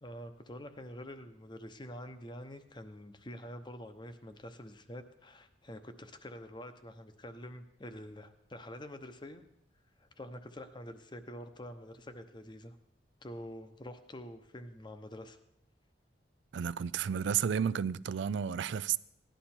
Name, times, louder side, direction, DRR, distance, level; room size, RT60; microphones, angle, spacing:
voice 1, 0.0-9.4 10.0-12.8 13.2-15.4, equal, 25° left, 0.8 m, -46 dB
voice 2, 16.5-19.0, right 8 dB, 80° right, 0.4 m, -32 dB
16.5 x 11.5 x 4.4 m
head